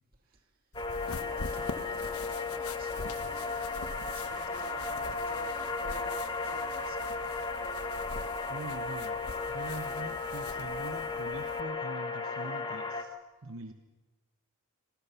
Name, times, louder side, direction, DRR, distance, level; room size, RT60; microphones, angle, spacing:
sound 1, 0.7-11.6, left 3 dB, 80° left, 1.2 m, -44 dB
sound 2, 0.7-13.0, left 4 dB, 20° left, 1.3 m, -35 dB
voice 1, 1.0-7.4, right 2 dB, 40° right, 3 dB, 2.7 m, -51 dB
voice 2, 8.5-9.2 9.5-13.2 13.4-13.7, right 3 dB, 65° right, 6 dB, 1.1 m, -43 dB
26.5 x 19.5 x 5.8 m, 1.2 s
head